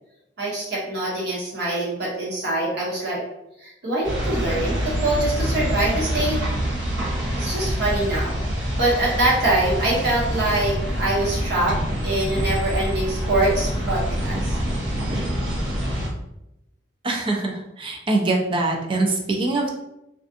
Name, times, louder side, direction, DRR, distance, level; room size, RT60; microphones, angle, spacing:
voice 1, 0.4-3.2 3.6-6.4 7.4-11.8 12.0-14.6, right 2 dB, 60° right, -6 dB, 1.1 m, -24 dB
sound 1, 4.0-16.1, equal, 85° right, 0.8 m, -26 dB
voice 2, 17.0-19.8, right 2 dB, 25° right, 1 dB, 0.4 m, -23 dB
2.4 x 2.4 x 2.5 m, 0.87 s
head